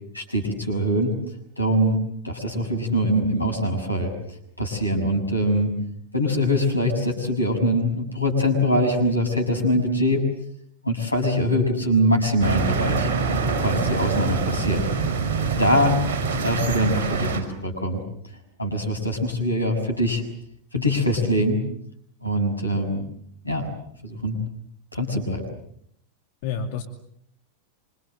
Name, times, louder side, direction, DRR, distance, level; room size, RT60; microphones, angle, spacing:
voice 1, 0.1-1.1 1.6-2.0 2.2-4.1 4.6-5.7 6.1-10.2 10.8-13.1 13.6-14.9 15.4-16.0 16.4-18.0 18.6-20.2 20.7-21.6 22.2-23.0 23.4-23.7 24.0-24.4 24.9-25.4, equal, 85° left, 3 dB, 6.6 m, -23 dB
sound 1, 12.4-17.4, right 4 dB, 50° right, 5.4 m, -25 dB
voice 2, 13.7-14.1 26.4-26.8, left 6 dB, 50° left, 4 dB, 2.6 m, -29 dB
26.5 x 25.5 x 7.7 m, 0.70 s
figure-of-eight pair, 90°, 0 cm